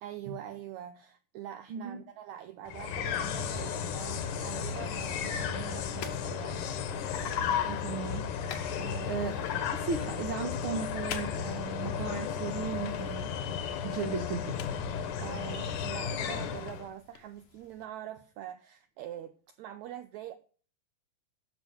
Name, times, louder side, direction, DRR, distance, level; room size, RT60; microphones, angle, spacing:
voice 1, 0.0-7.1 8.8-9.2 15.2-20.4, right 12 dB, 85° right, 1.6 m, -44 dB
voice 2, 1.7-2.0 7.6-8.3 9.1-9.4 9.7-13.3 13.8-14.6, right 5 dB, 70° right, 1.2 m, -36 dB
sound 1, 2.7-16.9, left 7 dB, 70° left, 2.5 m, -34 dB
sound 2, 5.8-17.9, left 8 dB, 85° left, 3.0 m, -50 dB
12.0 x 6.4 x 6.3 m
omnidirectional pair, 4.1 m